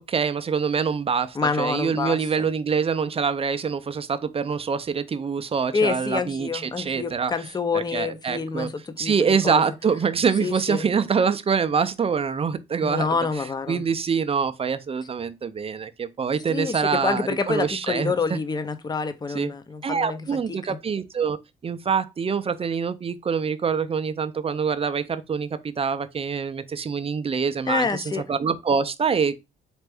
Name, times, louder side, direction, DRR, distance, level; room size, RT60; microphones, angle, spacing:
voice 1, 0.0-7.3 7.7-8.7 9.0-13.1 13.7-18.4 19.3-19.5 19.8-21.4 21.6-25.5 25.8-29.3, right 6 dB, 30° right, 0.4 m, -25 dB
voice 2, 1.3-2.5 5.7-9.6 10.4-10.9 12.8-13.8 16.5-20.8 27.7-28.2, left 4 dB, 20° left, 0.5 m, -27 dB
4.3 x 2.5 x 3.4 m
cardioid pair, 90°, 20 cm